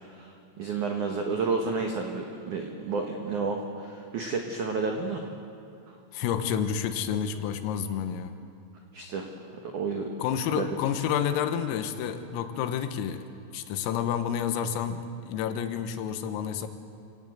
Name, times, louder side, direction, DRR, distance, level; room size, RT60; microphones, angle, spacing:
voice 1, 0.1-5.2 8.9-9.3 9.6-10.1 10.6-10.7, right 4 dB, 85° right, 2 dB, 1.7 m, -31 dB
voice 2, 6.1-8.4 10.2-13.3 13.5-16.7, left 8 dB, 90° left, 9 dB, 3.9 m, -29 dB
27.5 x 18.0 x 7.9 m, 2.5 s
omnidirectional pair, 6.0 m